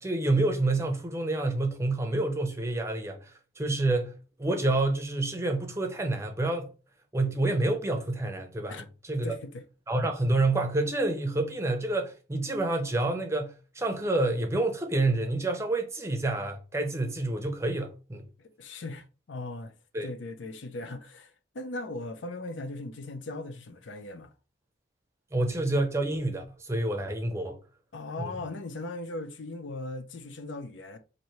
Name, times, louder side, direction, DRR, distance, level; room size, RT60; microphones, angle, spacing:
voice 1, 0.0-6.7 7.1-9.3 9.9-18.2 19.9-20.1 25.3-27.6 28.2-28.3, right 2 dB, 15° right, 0.6 m, -28 dB
voice 2, 9.2-9.6 18.4-19.7 20.0-24.3 27.9-31.0, left 2 dB, 75° left, 0.5 m, -38 dB
4.3 x 2.6 x 3.1 m
head